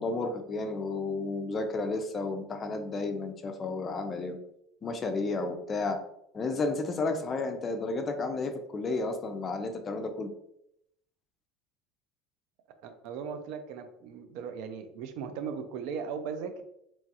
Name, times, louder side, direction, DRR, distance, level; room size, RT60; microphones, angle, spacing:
voice 1, 0.0-4.4 4.8-6.0 6.3-10.3, left 3 dB, 30° left, 7 dB, 0.4 m, -32 dB
voice 2, 12.8-16.6, right 6 dB, 65° right, 8 dB, 0.4 m, -38 dB
2.9 x 2.3 x 2.8 m, 0.77 s
supercardioid pair, 120°, 0 cm